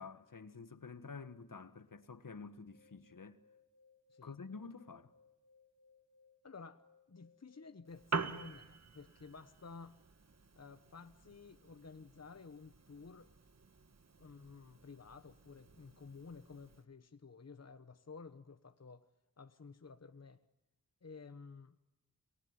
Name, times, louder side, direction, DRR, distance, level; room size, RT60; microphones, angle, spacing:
voice 1, 0.0-3.4 4.2-5.1, left 4 dB, 70° left, 1.6 m, -49 dB
sound 1, 2.6-8.6, left 4 dB, 35° left, 4.9 m, -68 dB
voice 2, 6.4-10.0 10.6-13.3 14.2-19.1 19.4-20.4 21.0-21.8, left 4 dB, 50° left, 1.1 m, -53 dB
Piano, 7.9-16.8, right 4 dB, 50° right, 1.7 m, -47 dB
29.5 x 20.5 x 9.8 m
wide cardioid pair, 55°, 34 cm